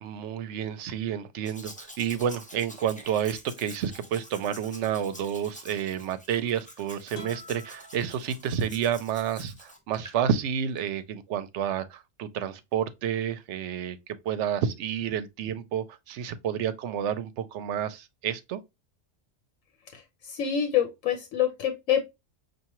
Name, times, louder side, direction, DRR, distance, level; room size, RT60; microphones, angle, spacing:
voice 1, 0.0-14.0 14.2-18.6, right 9 dB, 70° right, 0.8 m, -30 dB
Domestic sounds home sounds, 1.5-10.2 10.8-10.9, left 1 dB, 10° left, 0.5 m, -48 dB
sound 1, 7.1-9.0, left 1 dB, 50° left, 1.3 m, -47 dB
voice 2, 19.9-22.0, left 9 dB, 85° left, 1.1 m, -27 dB
5.6 x 2.5 x 2.9 m
omnidirectional pair, 1.3 m